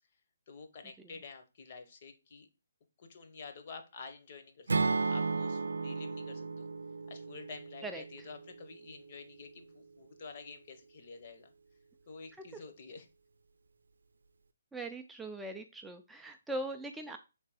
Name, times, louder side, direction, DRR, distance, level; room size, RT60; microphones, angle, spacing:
voice 1, 0.5-2.5 3.0-6.7 7.1-11.5 12.1-13.1, left 4 dB, 45° left, 7 dB, 0.8 m, -49 dB
Acoustic guitar / Strum, 4.7-8.8, right 4 dB, 85° right, 0.5 m, -34 dB
voice 2, 14.7-17.2, right 1 dB, 5° right, 4 dB, 0.3 m, -40 dB
3.3 x 3.2 x 4.8 m, 0.28 s
hypercardioid pair, 155°, 0 cm